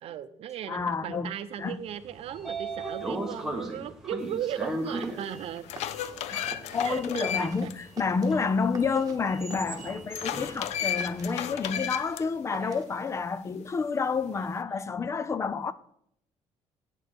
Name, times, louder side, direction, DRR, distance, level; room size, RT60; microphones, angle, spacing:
voice 1, 0.0-5.7 6.8-7.7 11.7-11.9 12.6-12.7, right 10 dB, 60° right, 0.7 m, -37 dB
voice 2, 0.7-1.3 1.6-1.8 6.3-15.7, left 5 dB, 25° left, 0.5 m, -29 dB
Sliding door, 1.9-12.0, right 2 dB, 5° right, 1.4 m, -38 dB
sound 1, 4.7-4.8 5.4-7.7 8.1-8.2 10.1-12.2, left 10 dB, 75° left, 0.6 m, -33 dB
sound 2, 4.8-13.2, right 5 dB, 30° right, 1.4 m, -50 dB
8.9 x 6.3 x 6.9 m
cardioid pair, 140°, 12 cm